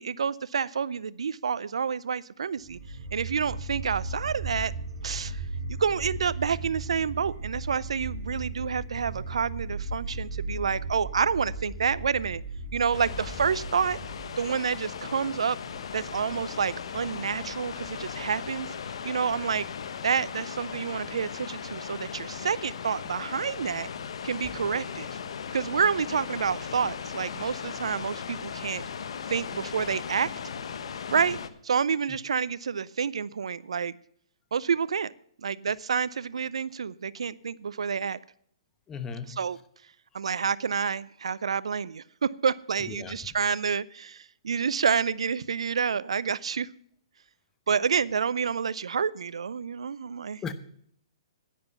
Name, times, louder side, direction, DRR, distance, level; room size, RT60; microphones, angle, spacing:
voice 1, 0.0-2.8 3.1-4.7 5.0-5.4 5.8-12.4 12.7-14.0 14.4-15.6 15.9-18.7 19.0-19.7 20.0-23.9 24.2-25.1 25.5-28.8 29.3-30.3 31.1-31.4 31.6-33.9 34.5-35.1 35.4-38.2 39.4-39.6 40.1-46.7 47.7-50.4, right 6 dB, 80° right, 19 dB, 0.5 m, -28 dB
sound 1, 2.6-19.7, right 2 dB, 45° right, 3.2 m, -38 dB
sound 2, 12.9-31.5, left 7 dB, 70° left, 1.1 m, -38 dB
voice 2, 38.9-39.4 42.8-43.2 50.4-50.5, left 6 dB, 15° left, 11 dB, 0.9 m, -37 dB
11.0 x 10.0 x 5.6 m, 0.65 s
hypercardioid pair, 140°, 3 cm